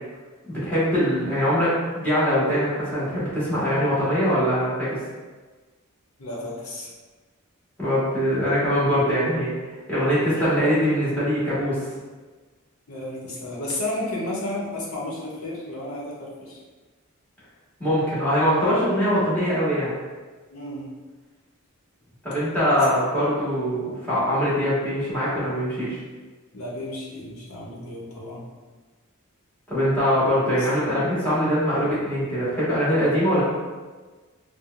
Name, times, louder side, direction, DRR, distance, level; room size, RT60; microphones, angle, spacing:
voice 1, 0.4-5.0 7.8-9.5 9.9-11.9 17.8-19.9 22.2-26.0 29.7-33.4, equal, 10° left, -11 dB, 1.5 m, -22 dB
voice 2, 6.2-6.9 12.9-16.6 20.5-20.8 22.6-22.8 26.5-28.4 30.6-30.7, left 1 dB, 75° left, -4 dB, 0.9 m, -32 dB
4.4 x 2.2 x 2.5 m, 1.3 s
head